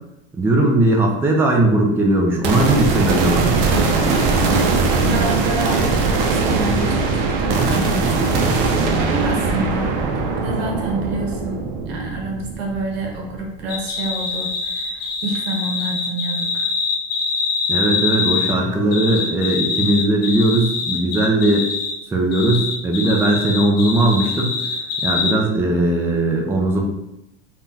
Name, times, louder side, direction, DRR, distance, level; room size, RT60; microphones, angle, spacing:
voice 1, 0.3-3.5 17.7-21.7 22.1-24.6 25.0-26.8, right 1 dB, 10° right, 1 dB, 0.4 m, -18 dB
sound 1, 2.4-13.8, right 3 dB, 55° right, 0.6 m, -20 dB
voice 2, 5.0-11.6 11.9-16.7, right 2 dB, 75° right, 0 dB, 1.0 m, -28 dB
sound 2, 13.7-18.5 18.9-21.9 22.3-25.3, left 5 dB, 75° left, 1.0 m, -24 dB
3.5 x 2.3 x 2.7 m, 0.88 s
hypercardioid pair, 100°, 31 cm